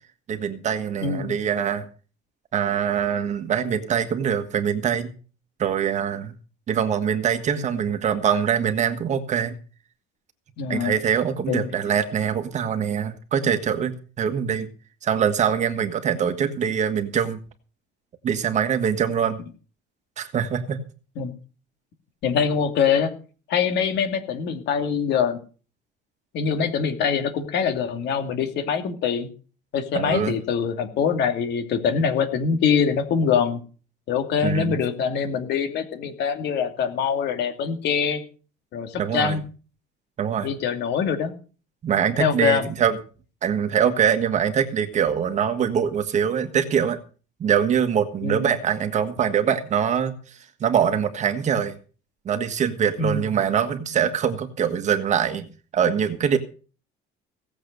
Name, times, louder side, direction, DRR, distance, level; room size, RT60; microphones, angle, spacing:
voice 1, 0.3-1.9 2.5-5.1 5.6-6.3 6.7-9.5 10.7-14.7 15.0-17.4 18.2-19.4 20.2-20.8 29.9-30.4 34.4-34.7 39.0-39.4 40.2-40.5 41.8-43.0 43.4-47.0 47.4-50.1 50.6-51.7 52.2-55.5 55.7-56.4, right 8 dB, 35° right, 9 dB, 1.6 m, -23 dB
voice 2, 1.0-1.4 10.6-10.9 11.5-11.7 21.2-21.3 22.2-23.1 23.5-25.4 26.3-29.3 29.7-33.6 34.1-38.2 38.7-39.4 40.4-41.3 42.2-42.6 48.2-48.5 53.0-53.3, left 6 dB, 55° left, 8 dB, 2.5 m, -24 dB
17.5 x 7.9 x 6.7 m, 0.38 s
cardioid pair, 155°, 21 cm